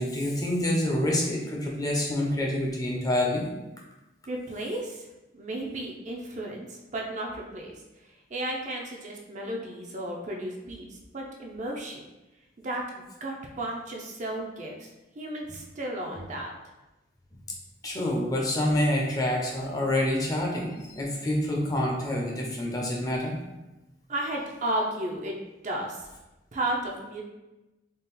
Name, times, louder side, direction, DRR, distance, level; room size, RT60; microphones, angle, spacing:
voice 1, 0.0-3.4 17.8-23.3, left 1 dB, 20° left, -2 dB, 0.6 m, -27 dB
voice 2, 4.3-5.1 5.3-12.1 12.6-16.5 24.1-25.4 25.6-26.1 26.5-27.2, right 1 dB, 40° right, 0 dB, 0.5 m, -34 dB
3.7 x 2.3 x 4.0 m, 1.0 s
head